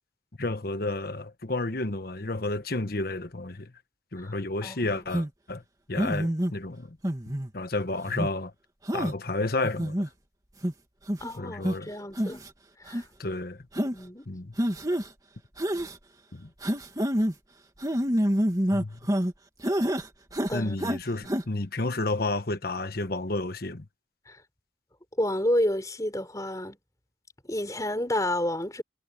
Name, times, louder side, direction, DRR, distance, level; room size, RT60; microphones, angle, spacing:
voice 1, 0.4-3.7 4.1-5.6 5.9-7.0 7.5-8.5 8.9-10.0 11.4-11.9 13.2-13.6 14.3-14.5 16.3-16.5 18.7-19.1 20.5-23.8, left 2 dB, 55° left, 1.2 m, -31 dB
voice 2, 4.6-5.0 11.2-12.4 12.9-13.0 13.8-14.3 20.5-20.8 21.1-21.3 24.3-24.4 25.2-26.8 27.5-28.8, left 1 dB, 20° left, 5.4 m, -30 dB
sound 1, 5.1-5.3 6.0-6.5 7.0-7.5 8.1-8.3 8.9-9.1 9.6-10.1 10.6-10.7 11.1-11.3 11.6-11.7 12.1-12.5 12.9-13.0 13.7-13.9 14.6-15.1 15.6-16.0 16.6-17.3 17.8-19.3 19.6-20.1 20.3-21.0 21.3-21.4, equal, 20° right, 2.3 m, -27 dB
head